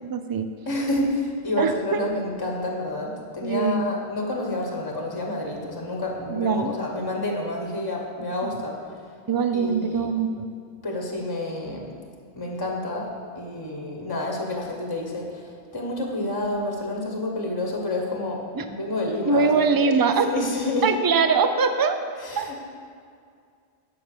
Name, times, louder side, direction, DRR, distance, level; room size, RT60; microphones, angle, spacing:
voice 1, 0.0-0.5 1.6-2.0 3.4-3.9 6.3-6.7 8.4-8.6 9.3-10.5 18.5-18.6 19.3-20.5 20.8-22.0 22.4-22.5, right 5 dB, 30° right, 8 dB, 0.4 m, -22 dB
voice 2, 0.7-8.8 9.5-10.1 10.8-11.9 12.4-19.9 20.2-20.9 22.2-22.7, left 2 dB, 20° left, 0 dB, 1.3 m, -29 dB
10.5 x 5.9 x 6.8 m, 2.3 s
omnidirectional pair, 1.2 m